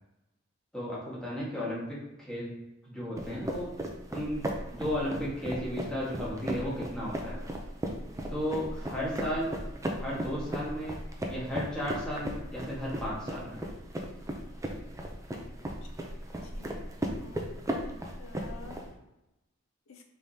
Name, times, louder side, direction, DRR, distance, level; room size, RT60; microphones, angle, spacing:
voice 1, 0.7-2.5 2.8-3.7 4.1-4.4 4.7-7.4 8.3-9.5 9.9-10.9 11.3-13.6, equal, 5° left, -8 dB, 1.4 m, -34 dB
sound 1, 3.2-18.8, right 1 dB, 15° right, 0.4 m, -36 dB
voice 2, 15.8-16.2 16.4-17.5 18.2-18.9 19.9-20.0, left 4 dB, 85° left, 5 dB, 0.5 m, -51 dB
4.6 x 3.4 x 2.7 m, 0.94 s
head